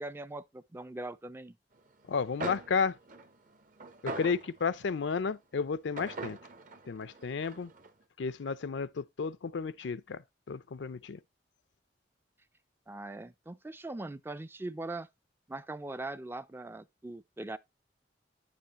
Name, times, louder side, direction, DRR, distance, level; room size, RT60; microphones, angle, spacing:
voice 1, 0.0-1.6 12.9-15.1 15.5-17.6, right 2 dB, 10° right, 0.4 m, -41 dB
voice 2, 2.1-3.0 4.0-6.4 6.9-7.7 8.2-10.2 10.5-11.2, left 5 dB, 80° left, 0.5 m, -32 dB
sound 1, 2.1-2.2 2.4-5.0 6.0-7.9, right 2 dB, 50° right, 0.9 m, -42 dB
9.1 x 7.0 x 2.9 m
head